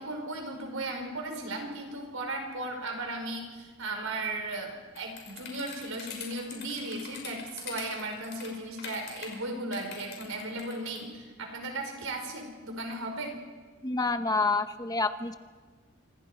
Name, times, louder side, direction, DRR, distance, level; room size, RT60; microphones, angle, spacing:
voice 1, 0.0-13.3, right 2 dB, 75° right, 3 dB, 5.0 m, -36 dB
sound 1, 5.0-9.4 9.7-11.0, left 7 dB, 55° left, 5.7 m, -43 dB
voice 2, 13.8-15.4, left 3 dB, 20° left, 9 dB, 0.8 m, -28 dB
26.5 x 26.0 x 5.1 m, 1.4 s
head